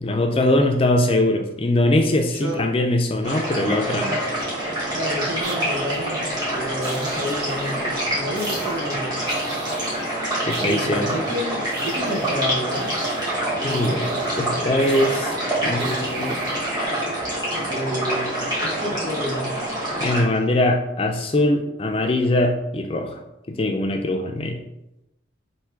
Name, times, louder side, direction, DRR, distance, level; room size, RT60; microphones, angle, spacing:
voice 1, 0.0-4.2 10.5-11.1 13.6-14.1 14.4-15.3 15.6-16.4 20.0-23.2 23.5-24.6, left 1 dB, 30° left, 4 dB, 0.4 m, -22 dB
voice 2, 2.3-2.6 4.9-6.2 6.5-9.2 10.6-12.9 13.6-14.7 15.6-16.0 17.7-19.6, equal, 85° right, 0 dB, 1.0 m, -30 dB
sound 1, 3.2-20.2, right 1 dB, 20° right, 1.4 m, -26 dB
sound 2, 5.4-6.4 6.8-8.1 8.3-9.0 9.3-10.1 10.5-14.4 14.7-16.9, right 3 dB, 55° right, 0.7 m, -37 dB
3.5 x 2.7 x 4.5 m, 0.89 s
head